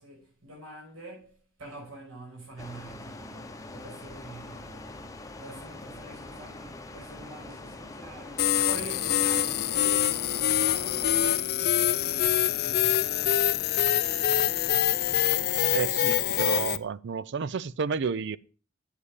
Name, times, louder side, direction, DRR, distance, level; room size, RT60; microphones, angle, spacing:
voice 1, 0.0-5.1 5.4-13.5, right 1 dB, 75° right, 6.0 m, -46 dB
sound 1, 2.6-11.4, left 2 dB, 15° left, 0.8 m, -43 dB
sound 2, 8.4-16.8, left 11 dB, 50° left, 0.5 m, -25 dB
voice 2, 15.7-18.4, right 5 dB, 60° right, 0.4 m, -31 dB
8.3 x 7.7 x 4.9 m
head